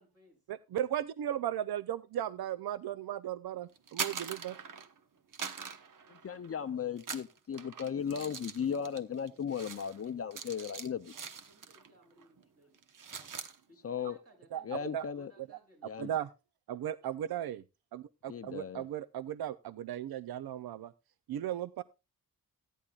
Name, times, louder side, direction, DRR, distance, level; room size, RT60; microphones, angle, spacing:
voice 1, 0.0-0.4 11.4-12.8 13.7-16.1, right 1 dB, 40° right, 0 dB, 6.9 m, -62 dB
voice 2, 0.7-4.6 14.5-14.6 14.9-15.1 16.0-16.3 16.7-17.6 17.9-20.9 21.3-21.8, right 11 dB, 85° right, 14 dB, 0.5 m, -36 dB
sound 1, 3.8-5.0 5.3-6.6 7.0-11.9 12.2-12.4 12.7-13.6, right 6 dB, 60° right, 1.1 m, -42 dB
voice 3, 6.1-11.1 13.8-14.2 14.6-15.3 15.8-16.1 18.3-18.9, left 7 dB, 40° left, 12 dB, 0.5 m, -36 dB
16.0 x 10.0 x 2.4 m, 0.28 s
wide cardioid pair, 130°, 36 cm